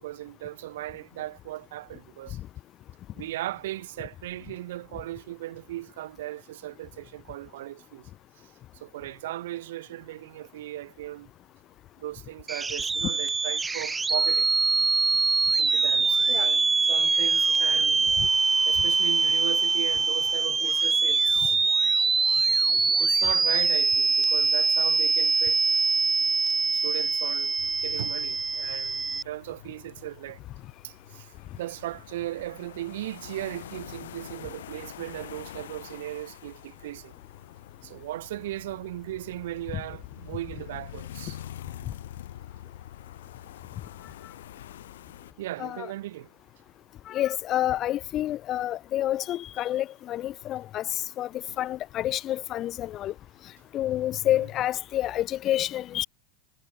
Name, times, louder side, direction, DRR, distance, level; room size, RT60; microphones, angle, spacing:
voice 1, 0.0-2.4 3.1-8.0 8.8-11.3 12.0-14.5 15.6-18.0 18.7-21.6 23.0-25.8 26.7-30.4 30.8-37.1 37.8-41.4 45.4-46.3 51.5-51.6 54.3-54.4, right 15 dB, 75° right, 1.1 m, -37 dB
sound 1, 12.5-29.2, right 4 dB, 10° right, 0.6 m, -23 dB
sound 2, 27.6-45.3, left 12 dB, 90° left, 5.1 m, -45 dB
voice 2, 45.6-45.9 47.1-50.9 51.2-51.3 51.6-53.1 53.7-56.0, left 13 dB, 35° left, 0.3 m, -28 dB
supercardioid pair, 140°, 0 cm